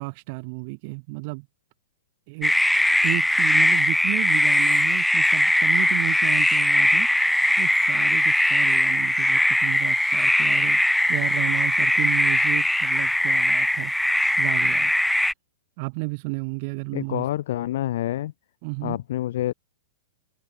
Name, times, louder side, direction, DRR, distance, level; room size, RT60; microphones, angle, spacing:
voice 1, 0.0-1.5 2.3-2.6 3.0-13.9 14.4-14.9 15.8-17.3 18.6-19.0, right 31 dB, 40° right, 3.0 m, -32 dB
sound 1, 2.4-15.3, left 1 dB, ahead, 0.9 m, -20 dB
voice 2, 16.9-18.3 18.8-19.5, left 13 dB, 60° left, 3.3 m, -27 dB
hypercardioid pair, 150°, 0 cm